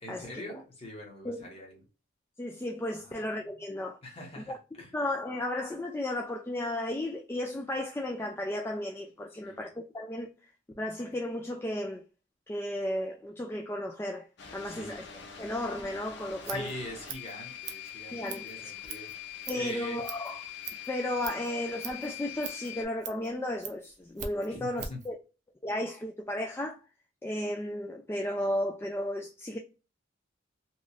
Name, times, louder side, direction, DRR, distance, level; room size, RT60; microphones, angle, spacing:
voice 1, 0.0-1.8 2.9-3.2 4.0-4.9 9.3-9.6 14.6-14.9 16.5-20.0 24.5-25.0, left 1 dB, 30° left, 1.1 m, -43 dB
voice 2, 2.4-4.0 4.4-4.6 4.9-10.3 10.8-12.0 12.5-14.3 14.5-15.1 15.4-16.7 18.1-18.4 19.5-20.4 20.9-25.2 25.6-26.8 27.2-29.6, left 1 dB, 15° left, 0.3 m, -34 dB
sound 1, 14.4-22.8, left 9 dB, 65° left, 0.6 m, -44 dB
Scissors, 16.2-25.1, right 6 dB, 40° right, 0.5 m, -44 dB
3.0 x 2.5 x 2.4 m
head